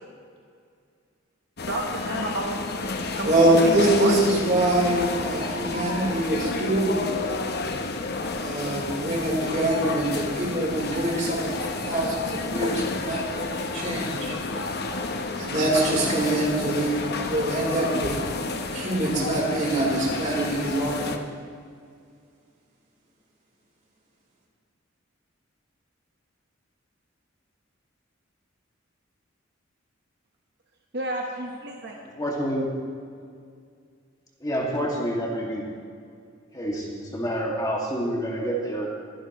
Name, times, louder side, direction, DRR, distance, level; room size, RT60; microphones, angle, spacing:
sound 1, 1.6-21.2, left 3 dB, 55° left, 1.0 m, -30 dB
voice 1, 1.7-2.6 3.2-4.1 30.9-32.0, right 2 dB, 55° right, 0 dB, 1.2 m, -31 dB
voice 2, 3.2-7.1 8.3-14.4 15.4-21.2, right 1 dB, 40° right, -3 dB, 3.9 m, -24 dB
voice 3, 32.2-32.7 34.4-35.7 36.5-38.9, equal, 20° left, -2 dB, 2.2 m, -28 dB
23.0 x 11.5 x 3.1 m, 2.2 s
head